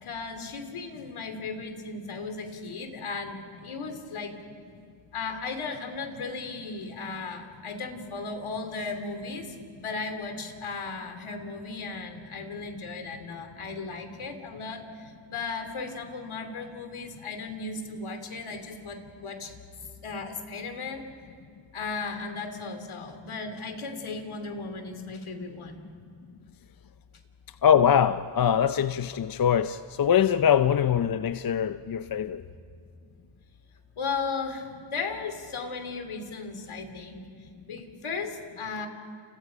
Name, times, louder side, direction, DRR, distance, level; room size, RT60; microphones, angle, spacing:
voice 1, 0.0-4.3 5.1-19.5 20.0-21.0 21.7-25.8 32.4-32.8 34.0-38.9, left 4 dB, 75° left, 2.9 m, -36 dB
voice 2, 27.6-32.4, left 8 dB, 45° left, 0.6 m, -23 dB
29.5 x 29.0 x 5.1 m
cardioid pair, 85°, 49 cm